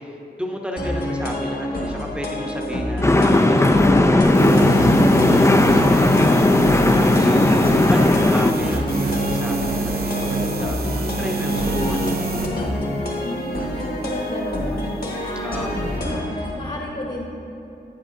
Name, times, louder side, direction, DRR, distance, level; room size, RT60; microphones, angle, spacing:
voice 1, 0.0-3.0 3.6-12.3 15.4-15.8, equal, 5° right, 1 dB, 0.8 m, -32 dB
sound 1, 0.8-16.5, left 1 dB, 60° left, 1.5 m, -27 dB
sound 2, 3.0-8.5, left 2 dB, 15° left, 0.3 m, -16 dB
sound 3, 4.2-12.5, right 3 dB, 55° right, 0.7 m, -26 dB
voice 2, 13.2-14.9 15.2-17.2, left 1 dB, 40° left, -3 dB, 1.0 m, -32 dB
9.8 x 9.0 x 2.6 m, 2.8 s
wide cardioid pair, 100°, 18 cm